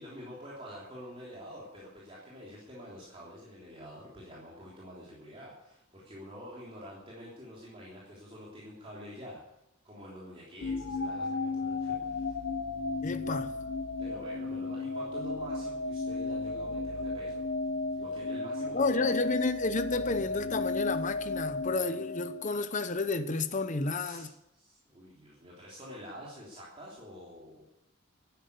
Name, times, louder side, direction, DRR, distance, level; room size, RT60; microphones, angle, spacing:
voice 1, 0.0-9.4 9.8-12.4 14.0-17.4 18.0-19.2 23.9-27.6, equal, 25° right, 3.4 m, -47 dB
sound 1, 10.6-22.7, left 3 dB, 65° left, 0.9 m, -34 dB
voice 2, 13.0-13.5 18.7-24.3, left 3 dB, 35° left, 0.8 m, -31 dB
12.0 x 10.5 x 8.2 m
head